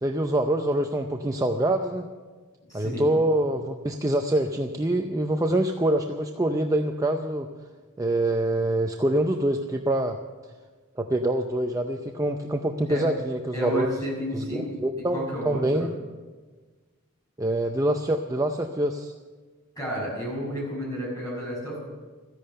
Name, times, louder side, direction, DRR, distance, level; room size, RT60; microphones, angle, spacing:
voice 1, 0.0-2.1 2.7-7.5 8.0-10.2 11.0-13.9 14.3-15.9 17.4-19.1, right 1 dB, 15° right, 5 dB, 0.5 m, -25 dB
voice 2, 2.7-3.0 12.9-13.0 13.5-14.7 15.1-15.9 19.8-21.8, equal, 15° left, -5 dB, 6.1 m, -31 dB
14.5 x 10.5 x 6.8 m, 1.4 s
head